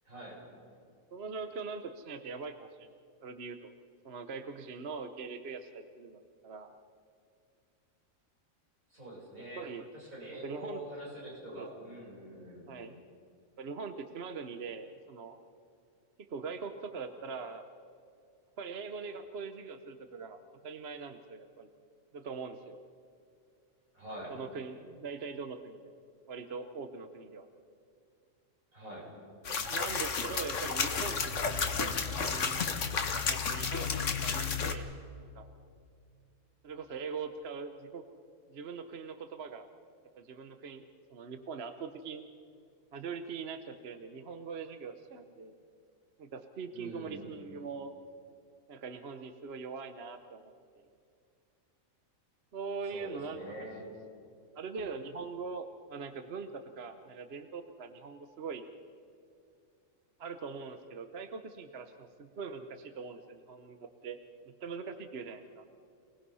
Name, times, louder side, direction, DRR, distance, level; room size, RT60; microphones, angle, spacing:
voice 1, 0.0-0.4 8.9-9.6 9.9-12.7 23.9-24.3 28.7-29.1 46.7-47.3 52.9-53.8, right 1 dB, 75° right, -5 dB, 7.9 m, -45 dB
voice 2, 1.1-2.9 3.2-3.7 4.0-6.7 9.6-9.9 10.3-10.8 11.5-11.9 12.7-12.9 13.6-15.4 16.3-17.7 18.6-21.7 22.1-22.8 24.3-26.0 26.3-27.5 29.5-32.6 33.2-34.9 35.2-35.5 36.6-38.0 38.5-39.7 40.2-40.8 41.1-42.3 42.9-45.5 46.2-48.0 48.7-50.5 52.5-53.7 54.5-58.6 60.2-64.2 64.6-65.6, right 5 dB, 50° right, 8 dB, 1.1 m, -42 dB
sound 1, 29.4-34.7, left 5 dB, 60° left, 1.7 m, -32 dB
28.5 x 19.0 x 5.6 m, 2.4 s
omnidirectional pair, 1.4 m